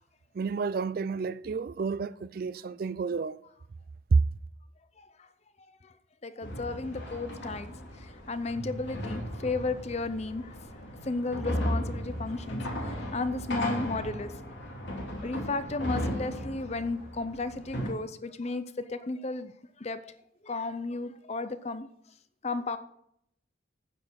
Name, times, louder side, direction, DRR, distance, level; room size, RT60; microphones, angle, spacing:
voice 1, 0.3-3.4 4.1-4.2, right 4 dB, 50° right, 0.3 m, -29 dB
voice 2, 5.0-5.3 5.8-5.9 6.2-7.7 8.0-10.5 11.0-14.3 15.2-19.5 19.8-20.1 20.4-21.9 22.4-22.8, left 3 dB, 35° left, 0.6 m, -34 dB
sound 1, 6.4-17.9, equal, 60° left, 2.8 m, -36 dB
9.5 x 7.3 x 6.3 m
head